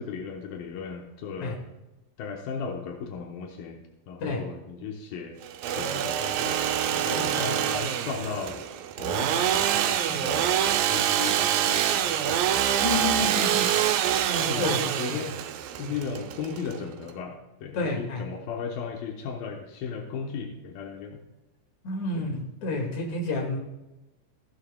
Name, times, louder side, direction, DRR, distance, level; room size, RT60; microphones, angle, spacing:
voice 1, 0.0-1.6 2.2-5.4 5.6-6.6 6.9-8.7 9.0-10.5 10.9-12.5 12.9-13.7 14.5-15.3 15.8-21.2 22.2-22.3, left 6 dB, 85° left, 2 dB, 2.8 m, -36 dB
Engine / Sawing, 5.4-17.1, right 10 dB, 85° right, 2.4 m, -26 dB
voice 2, 7.2-7.5 12.8-13.7 14.3-14.8 15.1-15.2 15.8-15.9 17.7-18.2 21.8-23.6, left 2 dB, 60° left, 1 dB, 3.2 m, -30 dB
14.5 x 11.0 x 2.3 m, 1.0 s
omnidirectional pair, 4.0 m